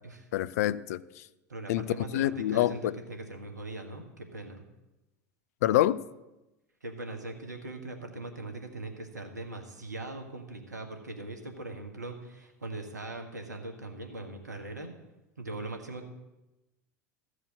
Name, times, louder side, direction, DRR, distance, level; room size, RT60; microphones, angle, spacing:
voice 1, 0.3-1.2 1.7-1.8 2.1-2.9 5.6-6.0, left 14 dB, 65° left, 18 dB, 0.4 m, -26 dB
voice 2, 1.5-4.6 6.8-14.9 15.4-16.1, right 2 dB, 85° right, 4 dB, 1.5 m, -40 dB
14.5 x 4.9 x 7.6 m, 1.0 s
figure-of-eight pair, 80°, 9 cm